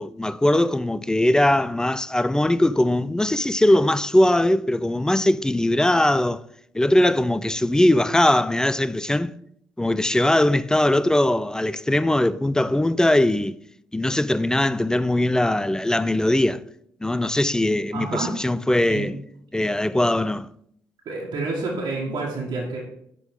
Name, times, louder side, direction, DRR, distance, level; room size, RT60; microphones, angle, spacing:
voice 1, 0.0-6.4 6.7-9.3 9.8-13.6 13.9-16.6 17.0-19.1 19.5-20.5, left 1 dB, 10° left, 0.4 m, -20 dB
voice 2, 17.9-18.3 18.9-19.1 21.0-22.8, right 3 dB, 60° right, 1.6 m, -28 dB
10.5 x 3.8 x 3.6 m
hypercardioid pair, 50°, 8 cm